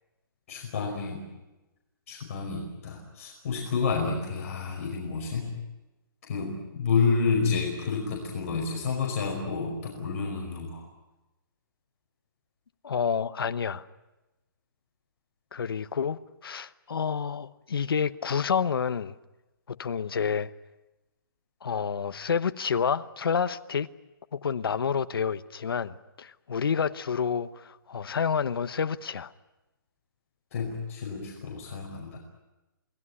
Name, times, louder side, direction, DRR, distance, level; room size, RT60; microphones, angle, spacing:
voice 1, 0.5-1.2 2.1-5.5 6.2-10.8 30.5-32.2, left 5 dB, 40° left, 5.2 m, -29 dB
voice 2, 12.8-13.9 15.5-19.2 19.7-20.5 21.6-23.9 24.3-29.3, left 6 dB, 85° left, 1.0 m, -29 dB
27.5 x 18.5 x 9.8 m
hypercardioid pair, 170°, 12 cm